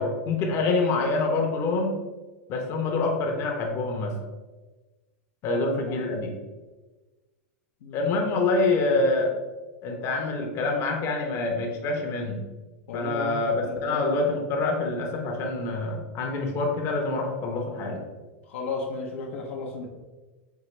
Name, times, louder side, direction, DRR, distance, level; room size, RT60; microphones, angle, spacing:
voice 1, 0.0-2.0 2.5-4.2 5.4-6.3 7.9-9.3 9.8-12.4 12.9-18.0, left 3 dB, 40° left, 2 dB, 0.7 m, -26 dB
voice 2, 5.5-6.0 7.8-8.1 12.9-14.0 18.5-19.9, left 3 dB, 75° left, 0 dB, 0.6 m, -34 dB
4.6 x 2.3 x 3.1 m, 1.2 s
hypercardioid pair, 115°, 7 cm